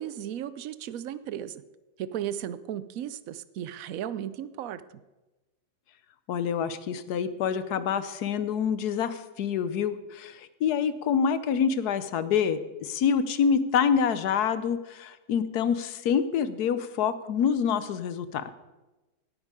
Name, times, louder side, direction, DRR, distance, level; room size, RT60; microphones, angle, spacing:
voice 1, 0.0-1.6 2.0-4.8, right 10 dB, 70° right, 15 dB, 0.8 m, -35 dB
voice 2, 6.3-18.5, left 7 dB, 65° left, 13 dB, 1.2 m, -26 dB
17.5 x 9.0 x 4.9 m, 1.1 s
omnidirectional pair, 1.9 m